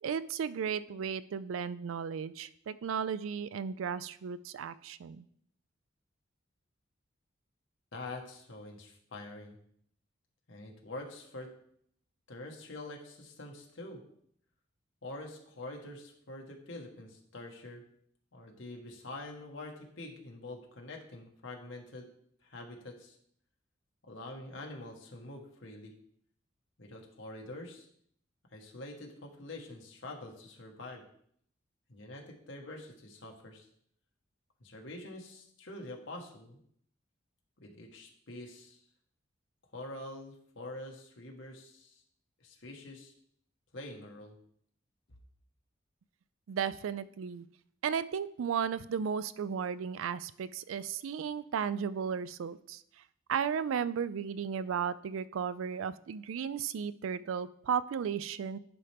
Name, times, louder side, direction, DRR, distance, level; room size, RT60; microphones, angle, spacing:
voice 1, 0.0-5.2 46.5-47.5 47.8-52.8 53.3-58.6, right 7 dB, 85° right, 16 dB, 0.4 m, -34 dB
voice 2, 7.9-9.6 10.5-11.5 12.3-14.0 15.0-17.8 18.3-22.1 22.4-23.2 24.0-25.9 26.8-27.9 28.5-31.0 31.9-33.7 34.6-36.6 37.6-38.8 39.7-42.0 42.4-43.1 43.7-44.4, left 2 dB, 70° left, 1 dB, 1.3 m, -45 dB
10.0 x 4.4 x 3.4 m, 0.65 s
head